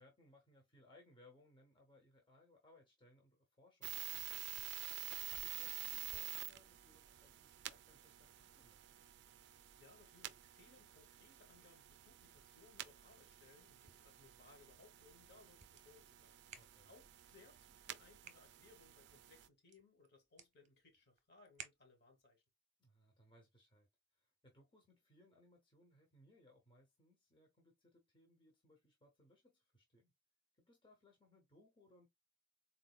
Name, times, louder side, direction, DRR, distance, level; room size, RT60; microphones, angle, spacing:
voice 1, 0.0-4.7 5.3-8.8 16.5-16.9 22.8-30.1 30.5-32.1, left 1 dB, 25° left, 0.8 m, -68 dB
sound 1, 3.8-19.5, right 14 dB, 60° right, 0.3 m, -50 dB
voice 2, 9.8-16.4 16.8-22.4, left 3 dB, 55° left, 1.4 m, -66 dB
sound 2, 16.4-22.3, right 6 dB, 40° right, 0.7 m, -62 dB
4.0 x 2.5 x 2.3 m
head